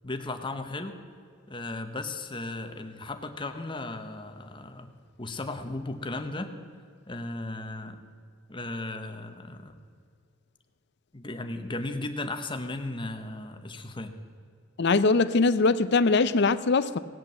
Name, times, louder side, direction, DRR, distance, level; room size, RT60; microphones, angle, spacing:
voice 1, 0.0-1.0 1.5-4.9 5.2-6.5 7.1-8.0 8.5-9.7 11.1-14.1, left 2 dB, 25° left, 7 dB, 1.0 m, -36 dB
voice 2, 14.8-17.0, left 3 dB, 60° left, 14 dB, 0.6 m, -22 dB
18.5 x 8.3 x 7.5 m, 2.2 s
head